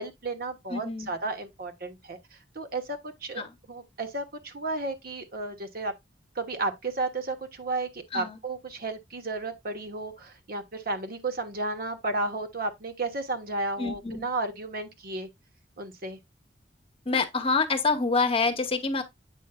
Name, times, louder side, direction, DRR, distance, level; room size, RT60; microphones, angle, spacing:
voice 1, 0.0-5.9 6.3-15.3 15.8-16.2, right 2 dB, 55° right, 1.2 m, -33 dB
voice 2, 0.7-1.1 3.4-3.5 8.1-8.4 13.8-14.3 17.1-19.0, left 4 dB, 30° left, 1.0 m, -26 dB
8.2 x 5.4 x 2.3 m
head